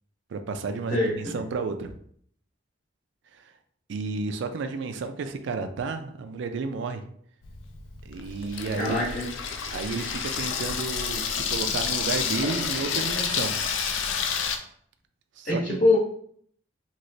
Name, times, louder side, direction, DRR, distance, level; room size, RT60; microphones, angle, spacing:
voice 1, 0.3-1.9 3.3-3.5 3.9-7.0 8.1-9.1 9.7-13.5 15.4-15.8, right 4 dB, 70° right, 7 dB, 0.4 m, -32 dB
voice 2, 0.9-1.4 8.8-9.3 15.4-16.0, left 2 dB, 40° left, -4 dB, 0.9 m, -24 dB
Water tap faucet / Sink (filling or washing), 7.4-14.6, left 6 dB, 80° left, 0.4 m, -29 dB
3.1 x 2.8 x 2.6 m, 0.62 s
head